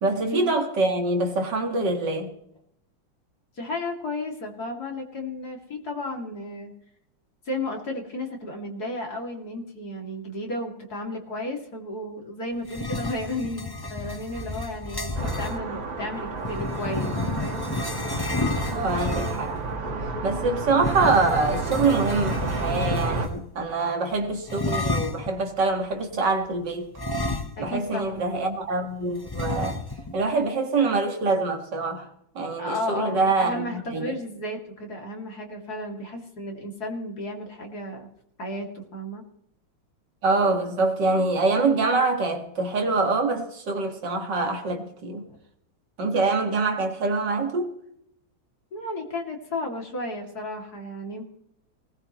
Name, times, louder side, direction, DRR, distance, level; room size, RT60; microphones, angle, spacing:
voice 1, 0.0-2.3 18.6-19.6 20.2-26.9 27.6-29.8 30.1-32.1 32.4-34.2 40.2-45.3 46.0-47.7, right 3 dB, 65° right, 2.5 m, -25 dB
voice 2, 3.6-6.7 7.4-17.1 17.4-17.6 23.8-23.9 27.6-28.2 32.6-38.1 38.4-39.2 45.3-45.4 48.7-51.2, left 1 dB, 50° left, 3.2 m, -33 dB
sound 1, 12.6-15.6 16.4-19.6 20.8-23.4 24.5-25.3 27.0-27.9 28.2-28.3 29.3-30.1, left 2 dB, 20° left, 0.6 m, -30 dB
sound 2, 15.2-23.3, right 3 dB, 80° right, 2.5 m, -31 dB
19.5 x 19.0 x 3.1 m
omnidirectional pair, 2.1 m